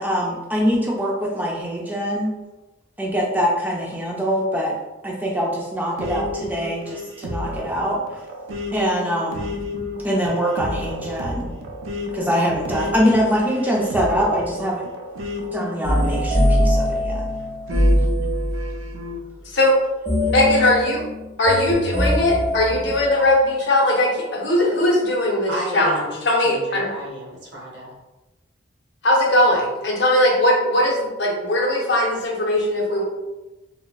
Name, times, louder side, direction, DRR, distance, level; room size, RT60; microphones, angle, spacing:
voice 1, 0.0-2.3 3.0-4.7 5.0-8.2 8.7-9.5 10.0-11.5 12.1-14.9 15.5-17.3, equal, 10° right, -3 dB, 0.4 m, -23 dB
sound 1, 6.0-17.1 17.7-19.2, left 2 dB, 90° right, 0.4 m, -32 dB
sound 2, 15.8-18.8 20.1-23.3, equal, 25° left, 1.0 m, -21 dB
voice 2, 20.3-21.0 21.4-26.9 29.0-33.0, left 1 dB, 60° left, -2 dB, 0.6 m, -19 dB
voice 3, 25.5-26.2 26.4-27.9, right 1 dB, 55° right, -3 dB, 0.7 m, -32 dB
3.8 x 2.1 x 2.3 m, 1.1 s
head